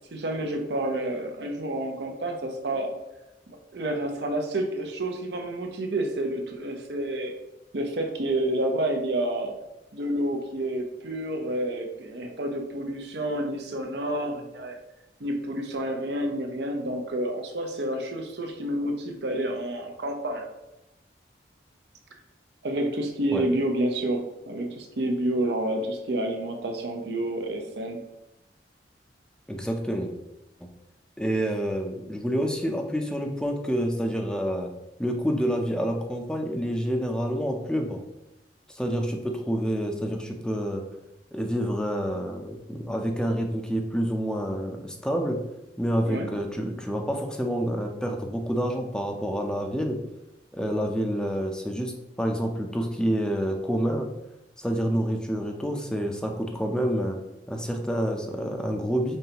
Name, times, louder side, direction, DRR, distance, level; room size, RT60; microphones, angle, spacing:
voice 1, 0.1-2.9 3.5-7.3 7.7-9.5 9.9-14.8 15.2-20.4 22.6-28.0 46.1-46.3, right 1 dB, 65° right, 4 dB, 0.7 m, -29 dB
voice 2, 29.5-30.1 30.6-30.7 31.2-34.7 35.0-38.0 38.8-40.8 41.3-45.4 45.8-50.0 50.5-54.1 54.6-57.2 57.5-59.2, equal, 5° left, 3 dB, 0.5 m, -28 dB
5.4 x 3.3 x 2.9 m, 0.94 s
head